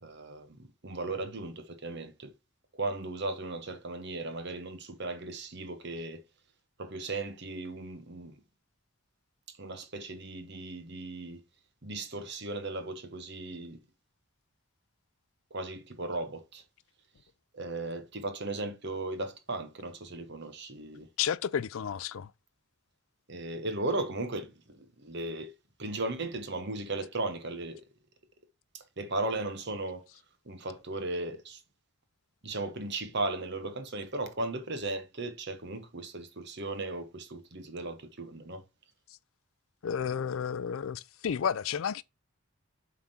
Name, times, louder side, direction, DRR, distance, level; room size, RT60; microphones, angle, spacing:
voice 1, 0.0-2.3 2.7-6.2 6.8-8.4 9.6-11.4 11.8-13.8 15.5-16.6 17.5-21.1 23.3-25.5 25.8-27.8 28.7-30.0 30.4-31.6 32.4-38.6, right 2 dB, 50° right, 1.2 m, -36 dB
voice 2, 21.2-22.3 39.8-42.0, left 7 dB, 65° left, 0.4 m, -31 dB
7.3 x 3.7 x 4.3 m
head